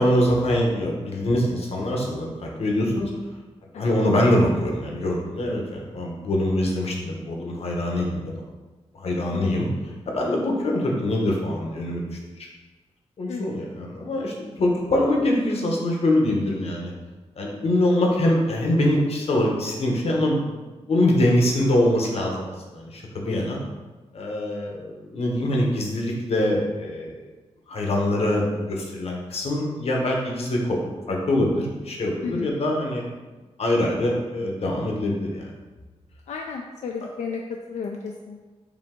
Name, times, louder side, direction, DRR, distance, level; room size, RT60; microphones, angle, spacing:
voice 1, 0.0-3.1 3.7-8.3 8.9-12.5 13.2-16.9 17.4-20.6 20.9-23.6 24.1-27.2 27.7-30.8 31.1-33.1 33.6-35.5, left 1 dB, 65° left, -1 dB, 0.9 m, -24 dB
voice 2, 3.7-4.1 9.3-9.5 13.3-13.6 21.1-21.2 23.3-23.7 32.2-32.5 36.3-38.4, left 5 dB, 85° left, 1 dB, 0.4 m, -34 dB
5.1 x 2.7 x 3.7 m, 1.2 s
wide cardioid pair, 115°, 11 cm